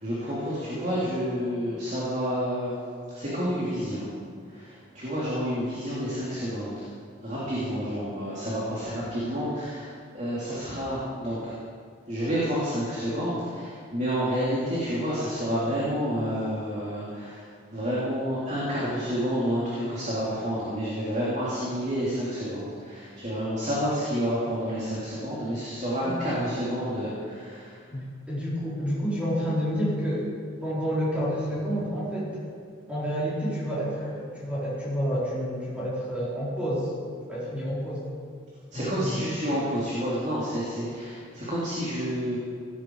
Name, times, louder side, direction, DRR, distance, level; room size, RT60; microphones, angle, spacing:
voice 1, 0.0-2.7 3.1-4.1 4.5-6.9 7.2-9.9 10.1-11.5 12.1-17.4 17.7-27.7 38.7-42.4, equal, 35° right, -8 dB, 3.5 m, -29 dB
voice 2, 26.0-26.7 27.9-30.2 30.6-32.5 32.9-36.9 37.3-38.0 38.7-39.2, equal, 5° right, -9 dB, 4.4 m, -29 dB
18.0 x 14.0 x 5.0 m, 2.1 s
head